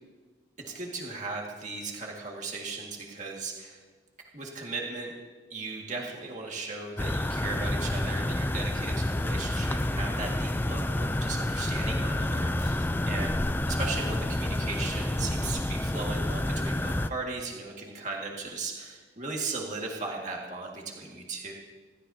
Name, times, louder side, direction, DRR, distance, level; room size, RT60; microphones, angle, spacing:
voice 1, 0.6-3.8 4.3-5.1 5.5-13.4 13.7-21.5, right 3 dB, 40° right, -1 dB, 1.9 m, -37 dB
sound 1, 7.0-17.1, left 1 dB, 10° left, 0.4 m, -29 dB
26.5 x 13.5 x 2.8 m, 1.4 s
head